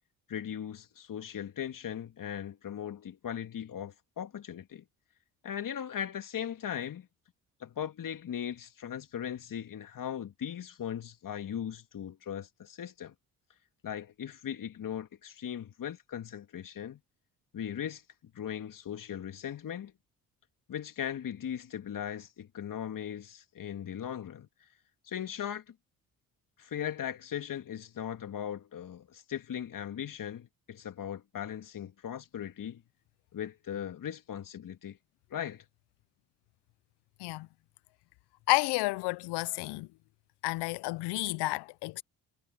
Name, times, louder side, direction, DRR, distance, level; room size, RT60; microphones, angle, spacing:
voice 1, 0.3-4.8 5.4-7.1 7.6-13.1 13.8-17.0 17.5-18.0 18.3-19.9 20.7-24.5 25.0-25.7 26.6-32.8 33.3-35.0 35.3-35.6, left 9 dB, 50° left, 2.4 m, -38 dB
voice 2, 38.5-39.9 40.4-42.0, left 22 dB, 75° left, 0.8 m, -31 dB
hypercardioid pair, 55°, 41 cm